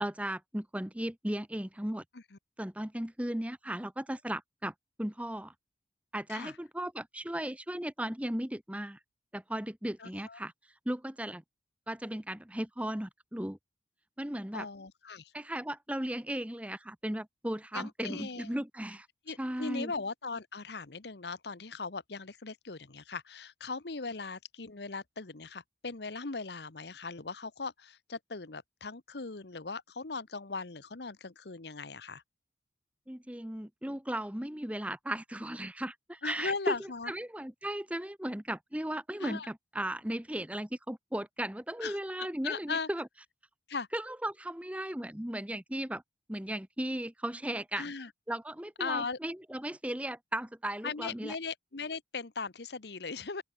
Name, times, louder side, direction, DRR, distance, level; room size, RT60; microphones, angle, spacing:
voice 1, 0.0-2.0 2.6-5.5 6.1-9.0 9.3-10.5 10.8-11.4 11.9-13.6 14.2-14.7 15.3-19.1 19.4-19.9 33.1-43.1 43.9-46.0 46.3-47.9 48.3-51.4, right 1 dB, 5° right, 1.0 m, -36 dB
voice 2, 10.0-10.4 14.5-15.3 17.7-18.6 19.3-32.2 36.2-37.1 39.2-39.5 41.8-42.0 42.4-42.9 43.7-43.9 47.8-48.1 48.8-49.2 50.8-53.4, left 4 dB, 65° left, 1.1 m, -38 dB
open air
head